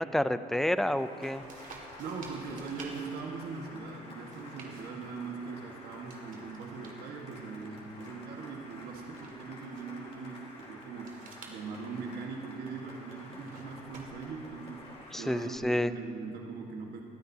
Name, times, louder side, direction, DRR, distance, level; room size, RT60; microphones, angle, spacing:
voice 1, 0.0-1.5 15.1-15.9, left 1 dB, ahead, 13 dB, 0.4 m, -29 dB
Cheering / Applause, 0.8-15.6, left 2 dB, 35° left, 3.6 m, -51 dB
sound 1, 1.2-15.6, right 4 dB, 55° right, 2.1 m, -55 dB
voice 2, 2.0-17.0, right 4 dB, 70° right, 0 dB, 1.5 m, -41 dB
22.5 x 13.5 x 2.8 m, 2.6 s
cardioid pair, 110°, 17 cm